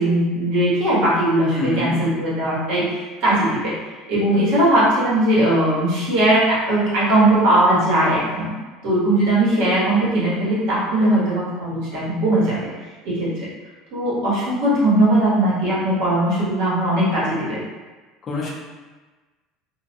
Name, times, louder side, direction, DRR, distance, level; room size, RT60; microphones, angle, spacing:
voice 1, 0.0-3.7 4.1-8.5 8.8-12.7 13.0-13.5 13.9-17.6, right 1 dB, 60° right, -8 dB, 1.0 m, -19 dB
voice 2, 1.5-2.0 18.2-18.5, left 2 dB, 25° left, -3 dB, 0.5 m, -26 dB
2.3 x 2.1 x 2.6 m, 1.3 s
cardioid pair, 165°, 0 cm